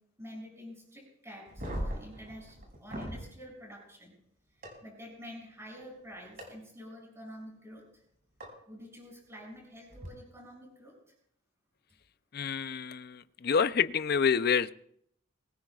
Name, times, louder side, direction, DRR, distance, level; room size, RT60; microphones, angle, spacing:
voice 1, 0.2-4.2 4.8-7.9 8.7-11.0, equal, 15° right, -2 dB, 6.5 m, -48 dB
sound 1, 1.5-3.2 4.6-4.7 6.4-6.5 8.4-8.5 9.9-10.1, equal, 45° right, 6.1 m, -38 dB
voice 2, 12.3-14.7, left 6 dB, 50° left, 14 dB, 0.5 m, -28 dB
23.0 x 20.0 x 2.4 m, 0.70 s
head